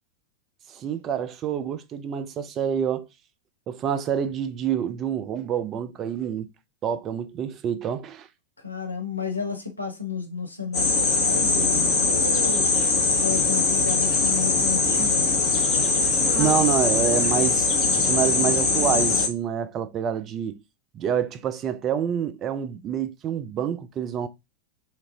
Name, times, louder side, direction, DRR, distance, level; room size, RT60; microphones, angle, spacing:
voice 1, 0.7-3.1 3.7-6.5 6.8-8.3 14.9-15.1 15.6-15.7 16.4-17.7 18.0-20.6 20.9-24.3, right 8 dB, 30° right, 0.4 m, -27 dB
voice 2, 8.6-12.7 13.2-15.4, left 5 dB, 80° left, 0.7 m, -32 dB
sound 1, 10.7-19.3, left 4 dB, 35° left, 1.0 m, -21 dB
2.8 x 2.5 x 2.8 m
figure-of-eight pair, 90°, 0 cm